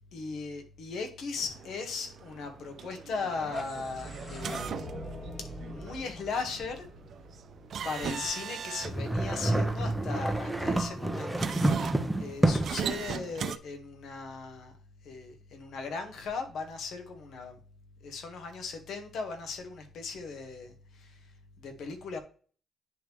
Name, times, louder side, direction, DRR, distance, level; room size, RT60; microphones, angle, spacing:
voice 1, 0.1-4.8 5.4-6.9 7.8-11.5 11.8-14.7 15.0-17.6 18.0-21.2 21.6-22.2, left 4 dB, 70° left, 5 dB, 1.4 m, -38 dB
sound 1, 1.4-13.6, right 8 dB, 60° right, 0.4 m, -40 dB
sound 2, 3.1-8.0, equal, 20° left, 2.2 m, -42 dB
sound 3, 8.8-12.9, right 1 dB, 5° right, 0.8 m, -28 dB
10.0 x 3.6 x 3.1 m, 0.41 s
cardioid pair, 90°, 0 cm